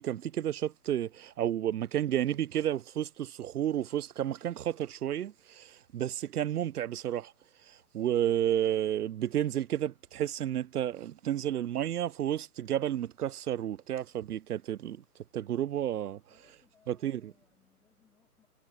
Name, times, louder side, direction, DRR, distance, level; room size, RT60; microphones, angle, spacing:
voice 1, 0.0-7.3 7.9-15.0 15.3-16.2 16.9-17.2, right 11 dB, 70° right, 0.6 m, -31 dB
voice 2, 15.9-18.5, left 7 dB, 5° left, 2.3 m, -68 dB
hypercardioid pair, 170°, 47 cm